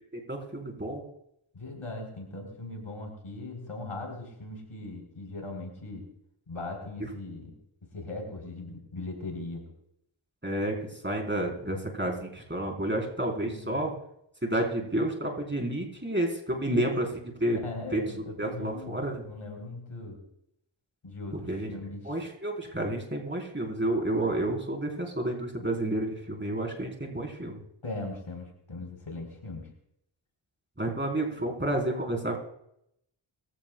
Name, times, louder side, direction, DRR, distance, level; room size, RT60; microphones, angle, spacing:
voice 1, 0.1-1.0 7.0-7.1 10.4-13.9 14.4-17.1 17.4-17.6 17.9-18.0 18.4-19.3 21.5-21.7 22.0-27.6 30.8-32.4, right 1 dB, 20° right, 1 dB, 4.2 m, -30 dB
voice 2, 1.5-6.1 6.5-7.5 7.9-9.6 13.4-13.8 16.6-16.9 17.6-20.2 21.0-22.0 27.8-29.7, left 2 dB, 80° left, 2 dB, 4.2 m, -39 dB
23.0 x 15.5 x 2.3 m, 0.76 s
cardioid pair, 45°, 50 cm